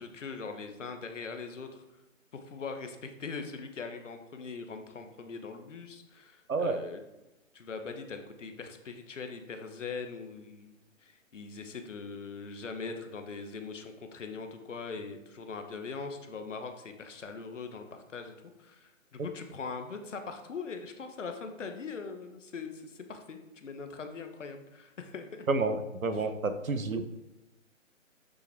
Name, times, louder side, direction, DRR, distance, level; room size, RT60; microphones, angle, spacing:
voice 1, 0.0-1.8 2.3-7.0 7.5-25.5 26.1-26.2, left 4 dB, 65° left, 6 dB, 1.3 m, -41 dB
voice 2, 25.5-27.0, right 3 dB, 90° right, 9 dB, 1.0 m, -29 dB
8.4 x 6.1 x 3.5 m, 1.0 s
hypercardioid pair, 150°, 40 cm